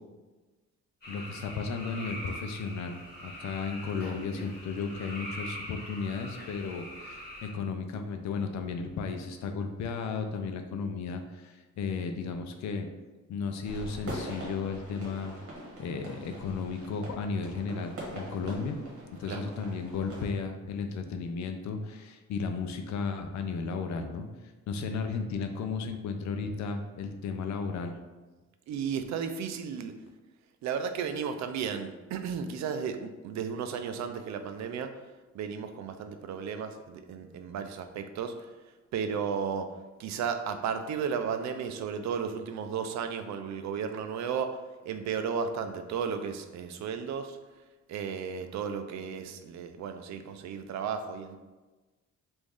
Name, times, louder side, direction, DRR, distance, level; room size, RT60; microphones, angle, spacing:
sound 1, 1.0-7.5, equal, 30° left, 1.4 m, -43 dB
voice 1, 1.1-12.9 13.3-15.3 15.8-18.8 19.2-28.0, left 5 dB, 65° left, 6 dB, 0.5 m, -34 dB
sound 2, 13.6-20.3, right 1 dB, 50° right, 1.3 m, -43 dB
voice 2, 28.7-29.9 30.6-34.9 35.3-38.5 38.9-39.7 40.0-44.6 44.9-47.4 47.9-51.4, right 6 dB, 65° right, 8 dB, 0.4 m, -34 dB
3.0 x 2.6 x 3.6 m, 1.2 s
cardioid pair, 90°, 30 cm